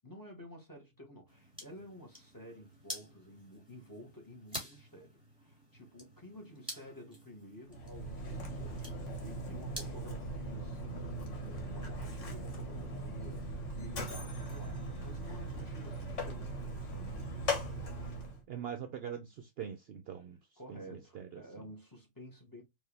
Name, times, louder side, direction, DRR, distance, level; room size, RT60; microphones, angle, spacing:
voice 1, 0.0-17.3 20.1-20.2 20.6-22.6, equal, 15° left, 1.6 m, -52 dB
sound 1, 1.3-10.1, equal, 5° right, 2.3 m, -49 dB
Mechanisms, 7.7-18.4, right 1 dB, 65° left, 1.6 m, -39 dB
voice 2, 18.5-20.4 20.7-21.7, right 8 dB, 60° right, 0.7 m, -43 dB
4.5 x 2.9 x 3.2 m
omnidirectional pair, 1.3 m